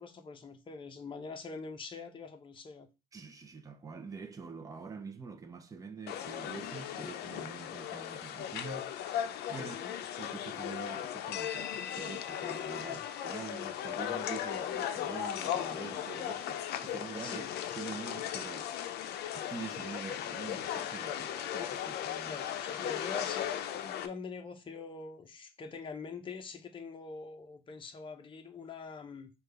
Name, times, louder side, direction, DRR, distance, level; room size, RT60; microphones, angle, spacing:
voice 1, 0.0-2.9 9.6-10.0 12.9-13.0 17.2-17.5 22.2-29.3, left 4 dB, 30° left, 0.7 m, -44 dB
voice 2, 3.1-8.9 9.5-17.4 17.7-18.9 19.3-22.4, right 5 dB, 20° right, 0.6 m, -45 dB
sound 1, 6.1-24.1, left 10 dB, 75° left, 0.5 m, -37 dB
5.0 x 2.4 x 3.3 m
cardioid pair, 110°, 17 cm